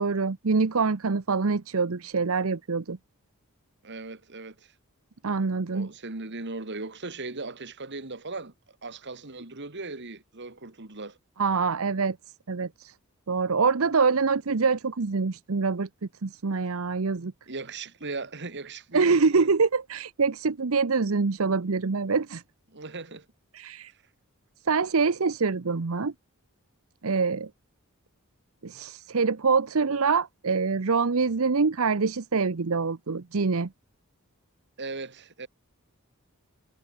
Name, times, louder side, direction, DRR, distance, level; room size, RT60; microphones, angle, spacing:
voice 1, 0.0-3.0 5.2-5.9 11.4-12.2 12.5-12.9 13.3-15.9 16.2-17.3 18.9-22.4 23.5-23.9 24.7-26.1 27.0-27.5 28.6-33.7, right 4 dB, 70° right, 0.8 m, -25 dB
voice 2, 3.8-4.7 5.7-8.5 8.8-11.2 17.5-19.5 22.7-23.3 23.9-24.0 34.8-35.5, right 3 dB, 55° right, 2.3 m, -38 dB
head